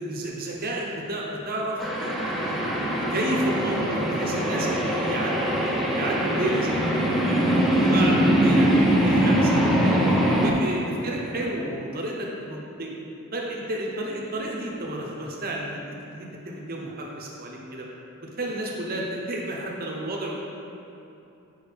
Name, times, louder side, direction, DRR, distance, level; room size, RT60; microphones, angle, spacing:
voice 1, 0.0-2.6 3.1-7.4 7.7-10.0 10.4-12.9 13.3-15.8 16.1-17.9 18.4-20.4, right 1 dB, 45° right, -2 dB, 0.9 m, -31 dB
sound 1, 1.8-10.5, right 1 dB, ahead, 0.5 m, -22 dB
6.6 x 5.3 x 3.5 m, 2.8 s
head